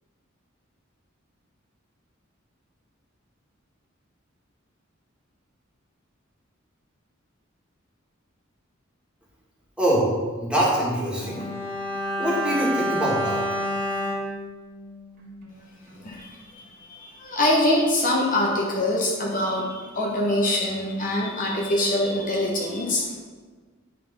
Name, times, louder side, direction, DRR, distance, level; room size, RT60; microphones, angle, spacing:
voice 1, 9.8-10.1 10.4-11.4 12.2-13.4, right 1 dB, 5° right, -6 dB, 2.1 m, -24 dB
Bowed string instrument, 11.2-15.6 15.9-16.0, equal, 55° right, 1.9 m, -29 dB
voice 2, 16.9-23.2, left 1 dB, 45° left, -2 dB, 1.1 m, -24 dB
10.0 x 4.0 x 5.3 m, 1.5 s
head